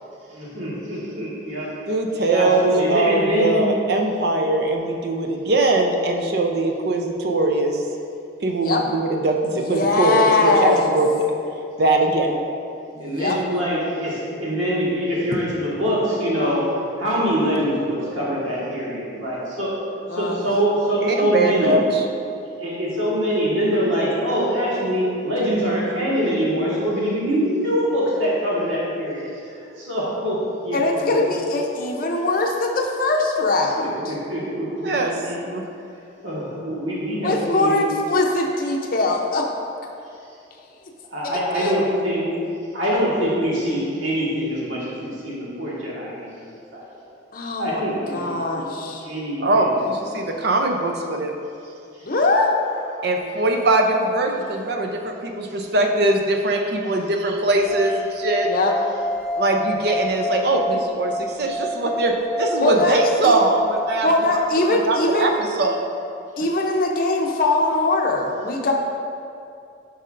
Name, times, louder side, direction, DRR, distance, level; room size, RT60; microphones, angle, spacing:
voice 1, 0.3-1.7 2.3-3.6 12.2-12.3 13.0-16.6 17.0-19.7 20.1-21.8 22.6-31.2 33.8-35.4 36.2-37.8 41.1-42.3 42.7-46.9 47.6-48.7 49.0-49.7 50.1-50.2 52.9-53.0, equal, 90° right, -7 dB, 1.6 m, -24 dB
voice 2, 1.9-7.8 8.4-11.2 11.8-12.3 13.3-13.4 21.0-22.0 34.8-35.1 35.5-35.6 49.4-51.3 53.0-58.5 59.4-64.1 64.7-65.9, right 2 dB, 55° right, 2 dB, 0.5 m, -21 dB
voice 3, 9.7-11.0 12.9-13.4 20.1-20.4 30.7-34.1 37.2-39.5 41.5-41.9 47.3-47.8 48.1-49.1 52.0-52.5 58.4-58.7 62.6-63.3 64.0-65.4 66.4-68.7, left 2 dB, 45° left, 0 dB, 0.6 m, -21 dB
sound 1, 57.6-64.7, equal, 5° left, 0.9 m, -29 dB
10.0 x 5.5 x 2.5 m, 2.6 s
head